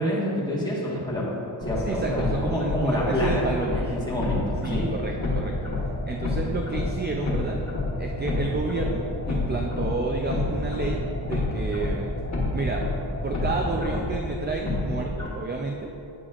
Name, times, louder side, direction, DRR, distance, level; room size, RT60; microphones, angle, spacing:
voice 1, 0.0-1.3 1.6-4.8, equal, 10° left, -6 dB, 1.4 m, -27 dB
sound 1, 1.6-15.3, left 2 dB, 35° left, 1.2 m, -29 dB
voice 2, 1.8-3.8 4.6-5.7 6.1-7.6 8.0-12.1 12.5-12.9 13.2-15.9, right 3 dB, 25° right, 1 dB, 0.3 m, -30 dB
8.6 x 6.9 x 2.4 m, 2.8 s
wide cardioid pair, 140°, 47 cm